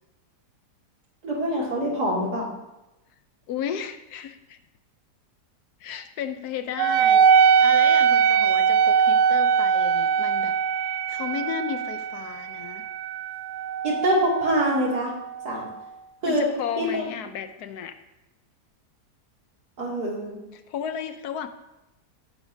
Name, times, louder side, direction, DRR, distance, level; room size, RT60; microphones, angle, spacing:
voice 1, 1.2-2.5 13.8-15.1 15.4-15.7 16.2-16.5 16.8-17.0 19.8-20.4, equal, 75° right, -4 dB, 3.1 m, -25 dB
voice 2, 3.5-4.6 5.8-10.5 10.9-12.9 16.2-18.0 20.5-21.5, left 8 dB, 75° left, 9 dB, 1.2 m, -34 dB
Wind instrument woodwind instrument, 6.8-15.7, right 7 dB, 90° right, 1.2 m, -21 dB
16.5 x 10.0 x 2.7 m, 0.97 s
omnidirectional pair, 1.7 m